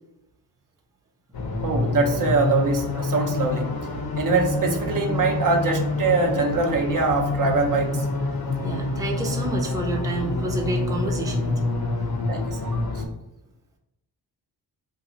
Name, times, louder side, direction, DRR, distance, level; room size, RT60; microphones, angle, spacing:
sound 1, 1.3-13.1, left 3 dB, 60° left, 0.8 m, -27 dB
voice 1, 1.6-3.7 4.2-8.0 12.3-12.8, right 3 dB, 50° right, 2 dB, 0.8 m, -23 dB
voice 2, 8.6-11.7, right 2 dB, 10° right, 0 dB, 0.6 m, -29 dB
2.8 x 2.4 x 3.8 m, 0.87 s
cardioid pair, 70°, 40 cm